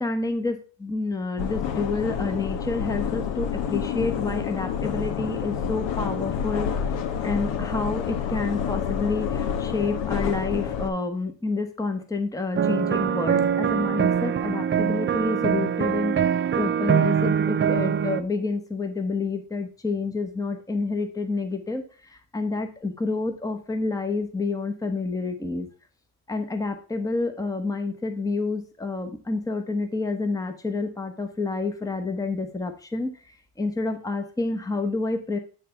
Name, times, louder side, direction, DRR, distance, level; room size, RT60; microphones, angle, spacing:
voice 1, 0.0-6.9 7.2-16.1 16.5-25.7 26.3-33.1 33.6-35.4, left 3 dB, 10° left, 6 dB, 0.9 m, -29 dB
sound 1, 1.4-10.9, left 8 dB, 80° left, 1.1 m, -28 dB
sound 2, 12.6-18.2, right 8 dB, 25° right, 0.5 m, -23 dB
9.1 x 3.4 x 5.5 m, 0.39 s
cardioid pair, 105°, 45 cm